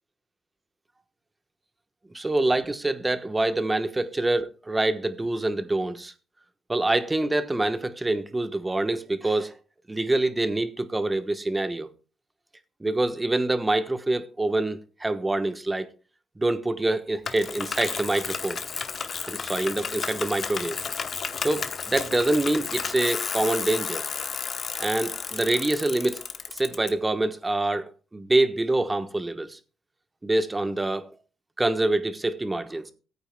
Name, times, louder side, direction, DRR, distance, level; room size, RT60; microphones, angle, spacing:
voice 1, 2.1-6.1 6.7-9.5 9.9-11.9 12.8-15.9 16.4-18.6 19.2-20.7 21.4-24.0 24.8-26.2 26.5-29.6 30.2-31.1 31.6-32.9, right 2 dB, 15° right, 1.1 m, -25 dB
Bicycle, 17.2-26.9, left 6 dB, 50° left, 0.9 m, -32 dB
17.0 x 9.0 x 2.2 m
cardioid pair, 90°, 0 cm